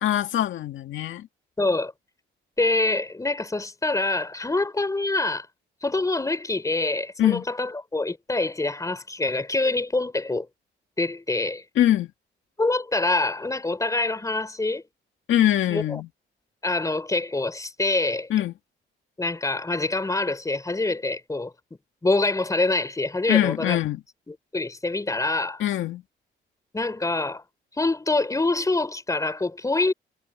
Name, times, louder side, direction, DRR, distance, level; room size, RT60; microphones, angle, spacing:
voice 1, 0.0-1.3 7.2-7.4 11.8-12.1 15.3-16.1 18.3-18.5 23.3-24.0 25.6-26.0, left 12 dB, 75° left, 2.1 m, -23 dB
voice 2, 1.6-1.9 2.6-5.5 5.8-10.5 11.0-11.6 12.6-14.8 15.7-16.0 16.6-18.3 19.2-21.5 22.0-23.8 24.3-25.6 26.7-27.4 27.7-29.9, left 2 dB, 15° left, 3.8 m, -25 dB
cardioid pair, 90°, 20 cm